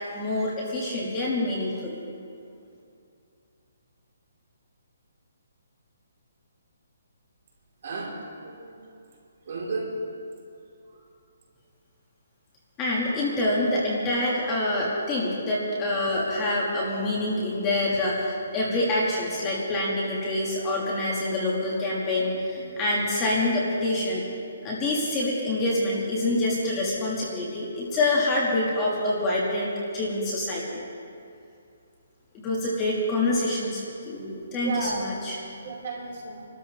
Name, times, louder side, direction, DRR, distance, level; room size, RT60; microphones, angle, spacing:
voice 1, 0.1-2.0 12.8-24.2 24.6-30.8 32.4-35.4, left 1 dB, 15° left, -5 dB, 1.4 m, -26 dB
voice 2, 7.8-8.8 9.5-9.9 34.6-35.0 35.6-36.5, right 4 dB, 45° right, -3 dB, 3.0 m, -33 dB
26.5 x 13.0 x 3.1 m, 2.5 s
hypercardioid pair, 175°, 0 cm